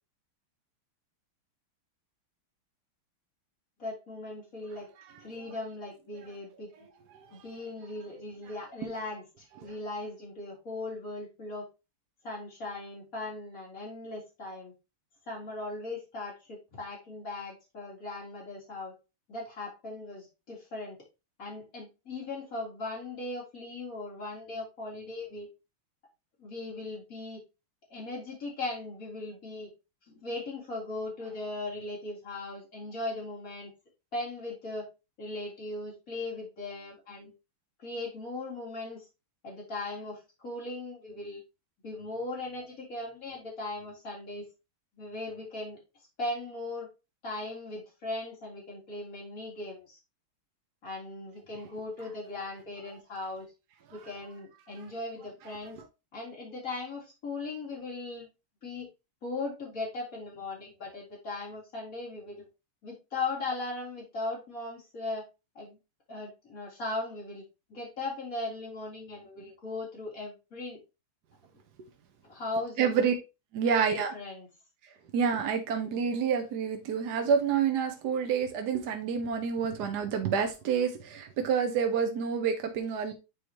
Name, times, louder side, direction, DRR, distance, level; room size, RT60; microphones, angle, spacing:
voice 1, 3.8-4.9 5.2-6.7 7.3-11.7 12.2-14.7 15.3-18.9 19.3-21.0 21.4-25.5 26.4-27.4 27.9-29.7 30.0-33.7 34.1-34.9 35.2-37.3 37.8-39.1 39.4-41.4 41.8-44.5 45.0-46.9 47.2-50.0 50.8-53.5 53.9-55.8 56.1-58.3 58.6-58.9 59.2-62.5 62.8-65.3 65.6-65.8 66.1-67.4 67.7-70.8 72.2-73.1 73.6-74.5, left 2 dB, 40° left, 3.8 m, -38 dB
voice 2, 72.8-73.2 73.5-74.1 75.1-83.1, right 7 dB, 60° right, 1.2 m, -28 dB
7.8 x 4.9 x 3.0 m
omnidirectional pair, 2.3 m